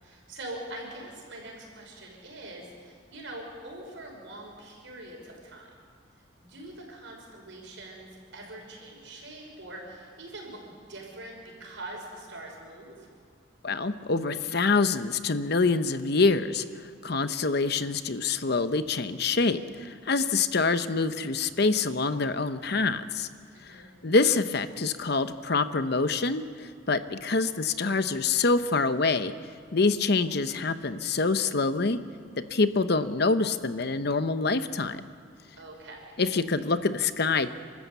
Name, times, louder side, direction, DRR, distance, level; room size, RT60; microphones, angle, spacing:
voice 1, 0.0-5.7 6.4-13.1 23.5-24.0 35.6-36.2, right 1 dB, 65° right, 0 dB, 5.9 m, -43 dB
voice 2, 13.6-23.3 23.6-29.3 29.7-32.0 32.4-35.0 36.2-37.5, left 3 dB, 55° left, 11 dB, 0.8 m, -26 dB
29.0 x 13.5 x 8.3 m, 2.1 s
head